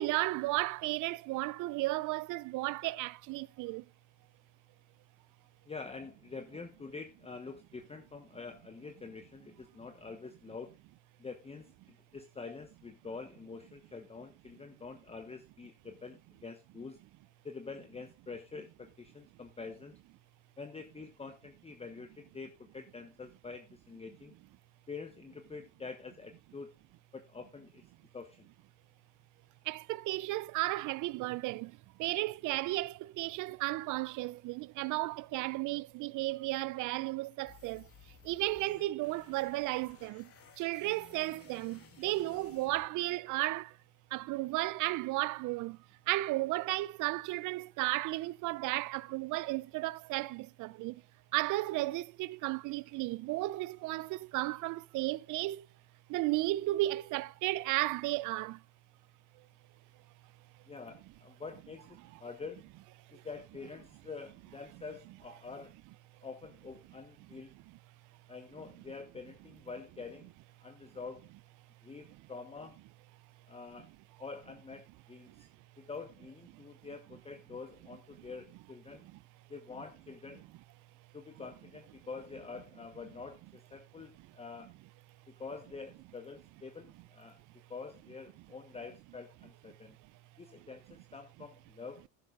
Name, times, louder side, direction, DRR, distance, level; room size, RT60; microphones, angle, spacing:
voice 1, 0.0-3.8 29.7-31.7 32.0-37.8 38.3-40.2 40.6-43.7 44.1-45.8 46.1-50.9 51.3-55.6 56.1-58.6, right 19 dB, 55° right, 0.5 m, -34 dB
voice 2, 5.7-10.8 11.2-17.0 17.4-20.0 20.6-24.3 24.9-26.7 27.1-27.8 28.1-28.5 60.7-62.6 63.1-65.7 66.2-67.5 68.3-70.3 70.6-71.3 71.8-72.8 73.5-73.9 74.2-75.5 75.8-79.1 79.5-80.4 81.1-84.7 85.3-87.4 87.7-90.0 90.4-92.1, left 4 dB, 15° left, 1.0 m, -46 dB
sound 1, 37.5-43.5, left 7 dB, 35° left, 2.0 m, -58 dB
11.5 x 10.5 x 2.4 m
supercardioid pair, 95°, 37 cm